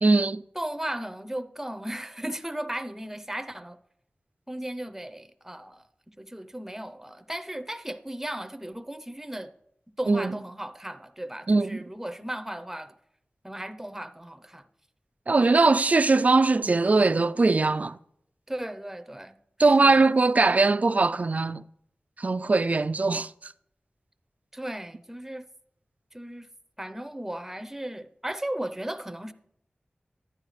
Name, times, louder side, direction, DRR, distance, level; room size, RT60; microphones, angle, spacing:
voice 1, 0.0-0.4 10.1-10.4 11.5-11.8 15.3-18.0 19.6-21.6 22.2-23.5, right 3 dB, 45° right, 0.3 m, -21 dB
voice 2, 0.5-3.8 4.5-5.9 6.2-9.5 10.0-12.9 13.4-14.7 15.4-15.6 18.5-20.0 24.5-25.4 26.1-26.5 26.8-29.3, right 1 dB, 10° right, 0.6 m, -36 dB
10.5 x 9.6 x 3.2 m
wide cardioid pair, 70°, 3 cm